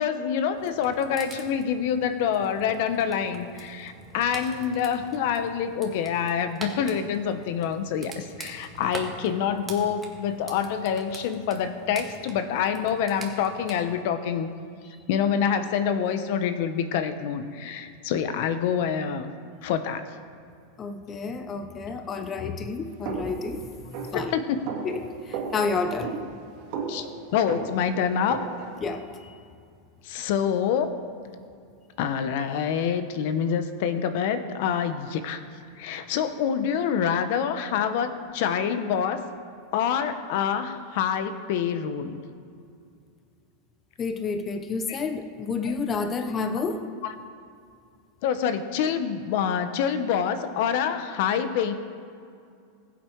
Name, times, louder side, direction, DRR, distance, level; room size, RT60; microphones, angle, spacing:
voice 1, 0.0-14.5 15.1-19.3 19.6-20.0 24.1-24.6 26.9-27.1 27.3-28.4 30.0-30.9 32.0-35.4 35.8-39.2 39.7-42.2 44.9-45.0 45.6-45.7 47.0-47.1 48.2-51.7, left 8 dB, 60° left, 10 dB, 1.0 m, -26 dB
sound 1, 0.5-13.7, right 3 dB, 15° right, 1.9 m, -44 dB
voice 2, 20.8-23.6 24.0-24.3 24.8-25.0 25.3-26.1 28.8-29.3 44.0-46.8, left 4 dB, 25° left, 8 dB, 0.8 m, -30 dB
sound 2, 23.0-28.8, right 5 dB, 55° right, 2.7 m, -36 dB
20.5 x 8.2 x 4.7 m, 2.4 s
supercardioid pair, 140°, 0 cm